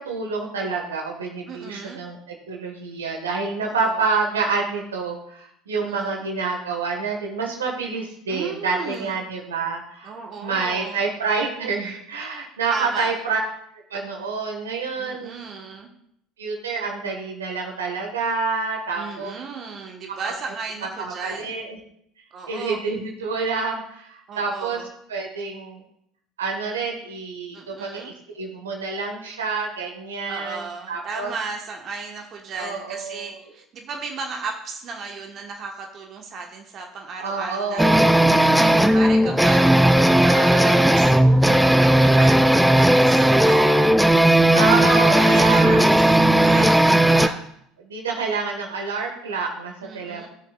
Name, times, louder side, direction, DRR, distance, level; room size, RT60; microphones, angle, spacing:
voice 1, 0.0-10.1 10.4-13.4 13.9-15.3 16.4-19.3 21.0-21.8 22.5-24.8 25.1-25.8 26.4-31.3 32.5-33.4 37.2-38.0 44.5-46.1 47.8-50.3, right 4 dB, 80° right, 0 dB, 1.6 m, -28 dB
voice 2, 1.5-2.0 3.6-4.0 5.8-6.3 8.3-9.2 10.0-11.0 12.7-13.1 15.0-15.9 18.9-21.6 22.3-22.8 24.3-24.9 27.5-28.1 30.3-43.8 44.9-47.4 49.8-50.3, right 4 dB, 45° right, 2 dB, 1.4 m, -35 dB
sound 1, 37.8-47.3, right 1 dB, 5° right, 0.6 m, -16 dB
18.5 x 6.5 x 2.5 m, 0.71 s
figure-of-eight pair, 65°, 0 cm